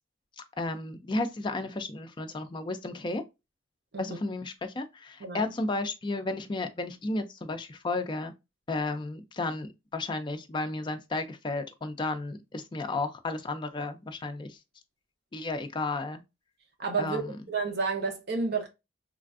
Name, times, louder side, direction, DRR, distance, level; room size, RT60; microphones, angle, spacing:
voice 1, 0.4-3.2 4.0-8.3 8.7-14.6 15.3-16.2 17.0-17.4, left 2 dB, 25° left, 0.4 m, -33 dB
voice 2, 5.2-5.5 16.8-18.7, right 4 dB, 55° right, 0.7 m, -31 dB
3.3 x 2.4 x 2.3 m
head